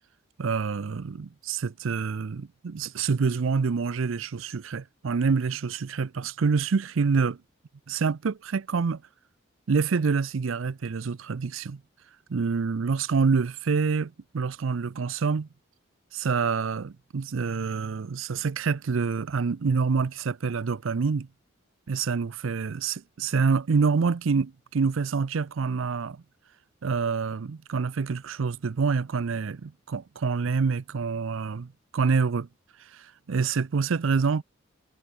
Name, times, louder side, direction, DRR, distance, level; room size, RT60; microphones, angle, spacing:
voice 1, 0.4-7.4 7.9-9.0 9.7-11.8 12.3-15.5 16.1-21.3 21.9-26.2 26.8-32.5 32.9-34.4, right 5 dB, 75° right, 0.5 m, -27 dB
head